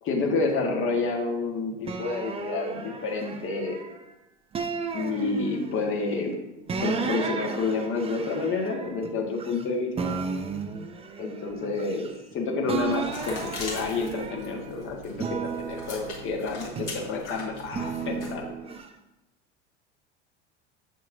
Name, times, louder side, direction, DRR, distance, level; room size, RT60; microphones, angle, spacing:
voice 1, 0.0-3.8 4.9-6.3 6.8-10.2 11.2-18.4, left 3 dB, 35° left, 1 dB, 1.6 m, -29 dB
sound 1, 1.8-4.0 4.5-5.9 6.7-9.6 10.0-12.3 12.6-14.7 15.1-17.1 17.7-18.9, right 5 dB, 15° right, 0.6 m, -34 dB
sound 2, 12.8-18.4, left 2 dB, 75° left, 2.3 m, -41 dB
8.1 x 6.2 x 2.7 m, 0.98 s
figure-of-eight pair, 75°, 35 cm